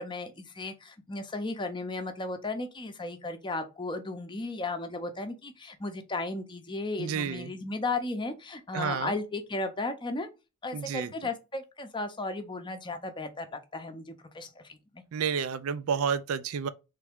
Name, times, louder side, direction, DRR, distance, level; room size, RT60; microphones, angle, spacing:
voice 1, 0.0-10.3 10.6-15.0, left 2 dB, 20° left, 0.6 m, -35 dB
voice 2, 7.0-7.5 8.7-9.1 10.7-11.1 15.1-16.7, right 6 dB, 80° right, 0.4 m, -30 dB
3.5 x 3.3 x 3.5 m
head